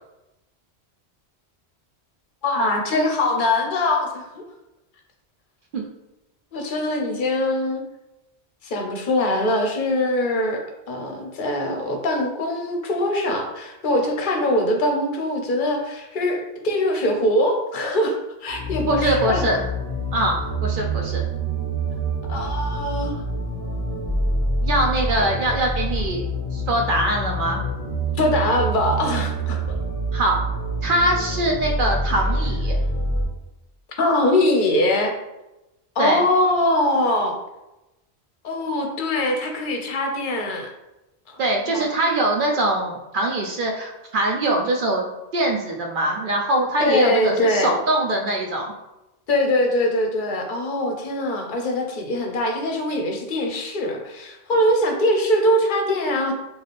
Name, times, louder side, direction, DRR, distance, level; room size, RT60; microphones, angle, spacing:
voice 1, 2.4-4.4 6.5-7.8 8.6-10.6 10.9-18.2 18.4-19.5 22.3-23.1 25.1-25.2 28.2-29.6 32.1-32.2 34.0-35.1 36.0-37.4 38.4-40.7 41.3-41.4 41.7-41.8 46.8-47.7 49.3-56.3, left 1 dB, 55° left, 2 dB, 0.7 m, -22 dB
sound 1, 18.5-33.2, right 1 dB, 35° right, 1.3 m, -26 dB
voice 2, 18.9-19.6 20.1-21.2 24.6-26.3 26.5-27.6 30.1-30.4 30.8-32.8 36.0-36.2 41.4-45.1 45.3-48.7, right 1 dB, 60° right, 1 dB, 0.6 m, -22 dB
3.3 x 2.4 x 4.0 m, 0.96 s
omnidirectional pair, 1.1 m